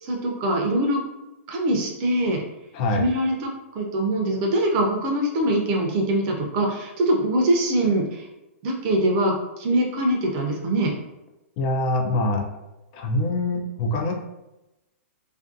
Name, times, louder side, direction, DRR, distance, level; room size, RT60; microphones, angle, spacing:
voice 1, 0.0-1.0 1.5-2.4 2.9-8.3 8.6-10.9, right 1 dB, 35° right, 0 dB, 0.6 m, -23 dB
voice 2, 11.6-12.4 12.9-14.1, left 2 dB, 40° left, 3 dB, 0.4 m, -24 dB
2.5 x 2.2 x 2.5 m, 0.96 s
hypercardioid pair, 140°, 7 cm